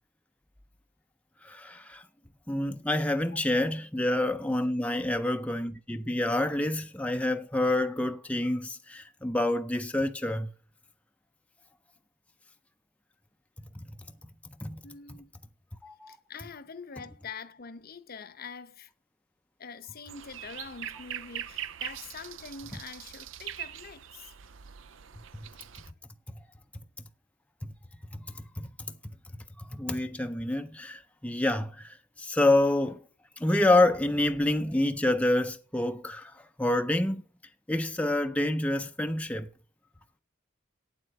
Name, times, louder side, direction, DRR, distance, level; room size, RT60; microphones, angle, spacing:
voice 1, 1.4-2.0 2.5-10.5 13.7-13.9 14.6-14.8 15.8-16.2 25.3-25.5 27.6-27.7 28.1-28.7 29.6-33.0 33.4-37.2 37.7-39.5, left 1 dB, 5° left, 0.5 m, -28 dB
voice 2, 14.8-15.3 16.1-18.9 19.6-24.4, left 5 dB, 50° left, 0.8 m, -44 dB
sound 1, 20.1-25.9, right 10 dB, 70° right, 0.5 m, -42 dB
8.8 x 7.7 x 7.8 m
head